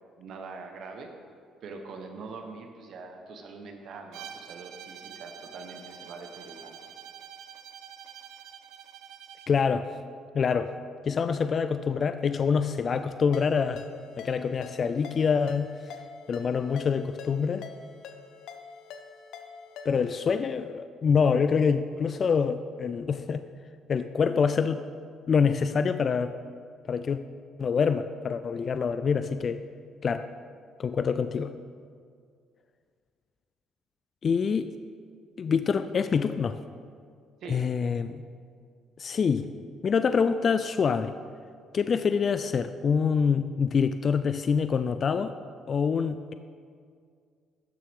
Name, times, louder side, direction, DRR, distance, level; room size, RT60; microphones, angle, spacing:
voice 1, 0.2-1.1 1.6-6.8 37.4-37.7, right 4 dB, 65° right, 3 dB, 1.0 m, -43 dB
Bowed string instrument, 4.1-9.6, right 9 dB, 80° right, 0.5 m, -46 dB
voice 2, 9.5-9.9 10.3-10.7 11.0-13.8 14.2-15.7 16.3-17.6 19.9-23.4 23.9-24.8 25.3-26.3 26.9-27.2 27.6-29.6 30.0-30.3 30.8-31.5 34.2-34.8 35.4-36.6 37.5-38.2 39.0-39.5 39.8-41.1 41.7-45.4 45.7-46.3, left 6 dB, 40° left, 11 dB, 0.3 m, -26 dB
Ringtone, 13.3-20.2, left 6 dB, 75° left, 0.8 m, -45 dB
12.5 x 7.2 x 3.5 m, 2.1 s
cardioid pair, 105°, 0 cm